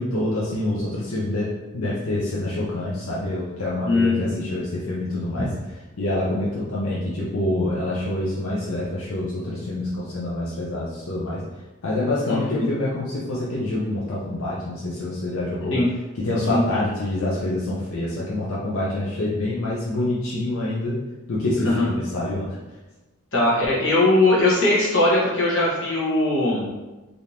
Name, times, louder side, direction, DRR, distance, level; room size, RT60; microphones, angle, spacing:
voice 1, 0.0-5.5 6.0-11.4 11.8-15.8 16.1-21.0 21.3-22.6, left 1 dB, 90° left, -6 dB, 0.6 m, -26 dB
voice 2, 3.9-4.3 5.4-5.5 12.3-12.7 15.7-15.9 16.5-16.6 21.6-21.8 23.3-26.6, left 2 dB, 65° left, -6 dB, 1.1 m, -20 dB
3.4 x 2.5 x 2.8 m, 1.1 s
head